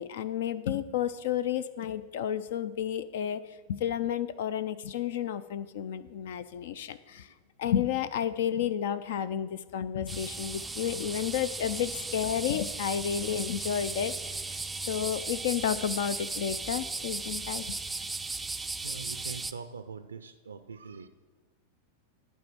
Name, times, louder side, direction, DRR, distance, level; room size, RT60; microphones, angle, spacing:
voice 1, 0.0-7.3 7.6-14.4 14.9-17.8, left 9 dB, 55° left, 15 dB, 0.4 m, -31 dB
sound 1, 10.1-19.5, right 3 dB, 10° right, 0.4 m, -36 dB
voice 2, 18.0-18.4 18.8-21.1, right 5 dB, 75° right, 11 dB, 0.4 m, -44 dB
11.0 x 4.5 x 7.7 m, 1.4 s
figure-of-eight pair, 90°, 0 cm